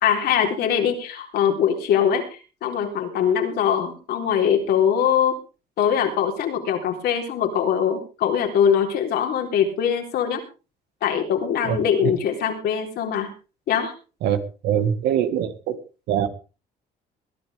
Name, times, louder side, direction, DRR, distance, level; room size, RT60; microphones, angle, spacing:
voice 1, 0.0-5.4 5.8-10.4 11.0-13.3 13.7-13.9, left 8 dB, 70° left, 3 dB, 3.9 m, -22 dB
voice 2, 14.6-15.8 16.1-16.3, right 9 dB, 80° right, 10 dB, 2.0 m, -22 dB
21.5 x 11.0 x 3.6 m, 0.33 s
cardioid pair, 110°, 17 cm